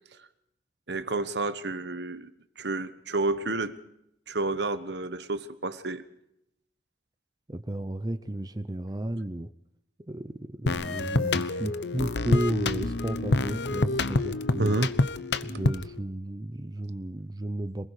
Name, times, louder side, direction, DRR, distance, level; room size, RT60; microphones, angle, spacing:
voice 1, 0.9-2.3 2.6-3.8 4.3-6.0 14.6-14.9, right 2 dB, 70° right, 11 dB, 1.3 m, -29 dB
voice 2, 7.5-9.5 10.1-14.8 15.4-17.9, right 1 dB, 20° right, 11 dB, 0.7 m, -33 dB
sound 1, 10.7-16.0, left 2 dB, 70° left, 0.9 m, -27 dB
26.5 x 20.5 x 5.0 m, 0.80 s
head